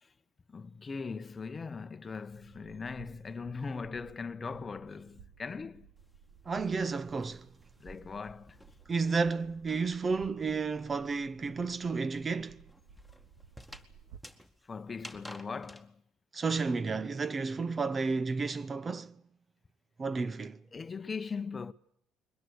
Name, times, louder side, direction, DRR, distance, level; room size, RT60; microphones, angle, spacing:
voice 1, 0.5-5.9 7.8-8.6 14.6-16.0 20.7-21.7, left 5 dB, 25° left, 1.0 m, -40 dB
sound 1, 2.3-14.2, right 7 dB, 85° right, 1.9 m, -57 dB
sound 2, 6.0-9.7 10.0-15.9, equal, 5° right, 2.1 m, -53 dB
voice 2, 6.5-7.5 8.9-12.6 16.3-19.2 20.0-20.6, right 4 dB, 30° right, 0.9 m, -32 dB
22.5 x 20.5 x 8.2 m
cardioid pair, 110°, 0 cm